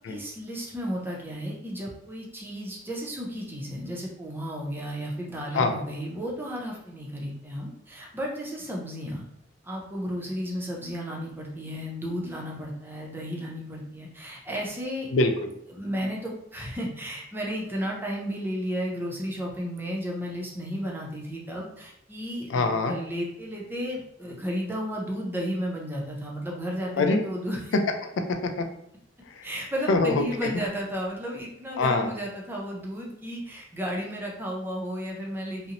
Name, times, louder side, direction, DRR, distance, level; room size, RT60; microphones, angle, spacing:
voice 1, 0.1-9.3 9.6-15.1 15.7-27.7 29.4-35.7, equal, 10° right, -2 dB, 0.5 m, -33 dB
voice 2, 15.1-15.5 22.5-23.0 27.0-27.2 28.0-28.7 29.4-29.5 29.9-30.5 31.8-32.1, left 3 dB, 85° left, 6 dB, 0.4 m, -24 dB
2.5 x 2.0 x 2.8 m, 0.74 s
head